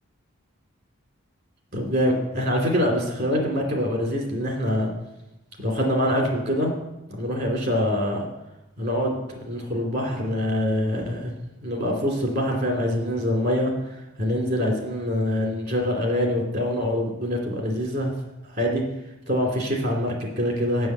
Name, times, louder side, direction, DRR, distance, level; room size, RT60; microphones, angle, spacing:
voice 1, 1.7-4.9 5.6-6.7 7.1-8.2 8.8-9.2 9.5-11.3 11.6-13.7 14.2-18.1 18.5-18.8 19.3-20.9, equal, 45° right, 0 dB, 2.8 m, -24 dB
7.7 x 6.4 x 8.0 m, 0.91 s
head